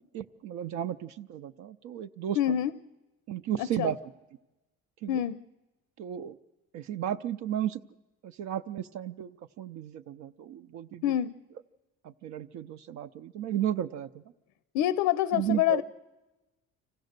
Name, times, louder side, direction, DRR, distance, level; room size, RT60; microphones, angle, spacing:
voice 1, 0.1-2.6 3.3-4.0 5.0-5.2 6.0-6.4 6.7-7.8 8.2-11.2 12.0-14.2 15.3-15.8, right 10 dB, 65° right, 9 dB, 0.6 m, -34 dB
voice 2, 2.4-2.7 3.6-3.9 5.1-5.4 11.0-11.3 14.7-15.8, left 12 dB, 85° left, 17 dB, 0.6 m, -26 dB
25.5 x 15.5 x 6.6 m, 1.1 s
cardioid pair, 135°, 30 cm